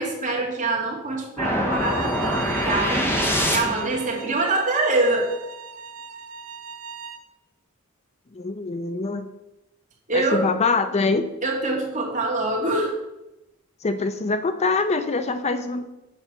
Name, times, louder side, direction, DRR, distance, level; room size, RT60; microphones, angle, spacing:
voice 1, 0.0-5.3 10.1-10.5 11.4-12.9, right 2 dB, 35° right, -1 dB, 2.1 m, -25 dB
sound 1, 1.4-4.0, equal, 10° left, 1.3 m, -24 dB
Bowed string instrument, 1.7-7.2, right 6 dB, 80° right, 1.0 m, -37 dB
voice 2, 8.3-9.3 10.1-11.3 13.8-15.8, left 3 dB, 30° left, 9 dB, 0.5 m, -24 dB
7.3 x 5.3 x 6.7 m, 0.96 s
head